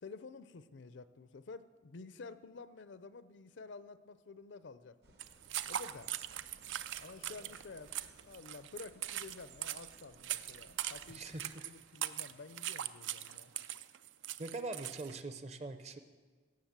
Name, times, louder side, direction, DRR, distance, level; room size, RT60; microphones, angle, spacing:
voice 1, 0.0-5.2 5.7-6.1 7.0-11.3 11.6-13.5, left 4 dB, 80° left, 14 dB, 0.5 m, -51 dB
sound 1, 5.0-11.5, right 3 dB, 60° right, 1.1 m, -63 dB
sound 2, 5.2-15.2, right 11 dB, 90° right, 0.4 m, -41 dB
voice 2, 11.1-11.7 14.4-16.0, right 3 dB, 35° right, 10 dB, 0.6 m, -43 dB
17.0 x 6.0 x 7.3 m, 1.5 s
head